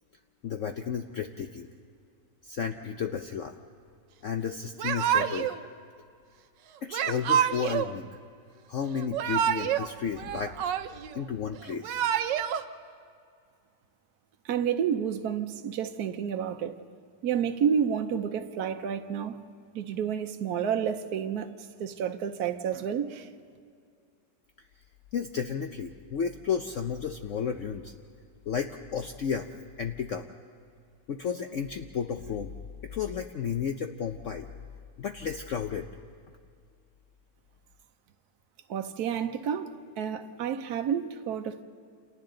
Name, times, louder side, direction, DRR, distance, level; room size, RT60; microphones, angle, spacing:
voice 1, 0.4-1.7 2.4-3.5 4.2-5.5 6.8-8.1 8.7-10.6 11.1-12.0 25.1-27.9 28.5-29.5 29.8-30.3 31.1-32.5 32.8-34.5 35.0-35.9, left 7 dB, 60° left, 0.9 m, -32 dB
Yell / Crying sobbing, 4.8-5.6 6.9-7.9 9.0-9.9 10.2-11.1 11.7-12.6, right 9 dB, 85° right, 1.4 m, -27 dB
voice 2, 14.4-16.8 17.2-19.4 19.7-23.3 38.7-41.6, right 8 dB, 65° right, 1.3 m, -30 dB
29.5 x 28.0 x 3.9 m
omnidirectional pair, 1.9 m